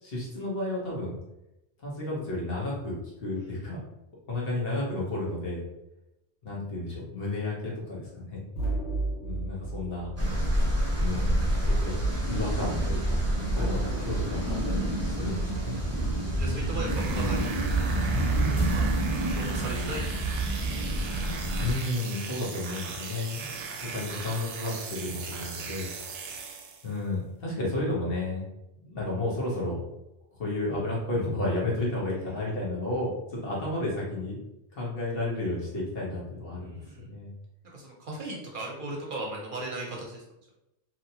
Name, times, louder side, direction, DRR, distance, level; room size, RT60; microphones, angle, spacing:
voice 1, 0.0-1.2 1.8-2.9 3.2-3.8 4.3-5.6 6.4-8.5 9.2-10.1 11.0-11.3 11.6-13.2 13.5-15.8 21.6-23.4 23.7-25.9 26.8-28.5 28.9-29.9 30.4-34.4 34.7-36.8 37.0-37.3, left 2 dB, 60° left, -5 dB, 1.2 m, -32 dB
sound 1, 8.5-11.3 13.5-16.2 18.6-19.2, right 2 dB, 85° left, 1.1 m, -36 dB
sound 2, 10.2-21.7, right 1 dB, 20° right, 0.5 m, -27 dB
voice 2, 16.4-17.6 18.4-18.8 19.4-20.1 20.6-20.7 22.9-23.1 32.3-32.5 36.6-37.1 37.7-40.2, right 2 dB, 55° right, -2 dB, 0.8 m, -37 dB
sound 3, 16.8-27.0, right 5 dB, 85° right, 0.9 m, -38 dB
2.9 x 2.7 x 2.7 m, 0.91 s
omnidirectional pair, 1.1 m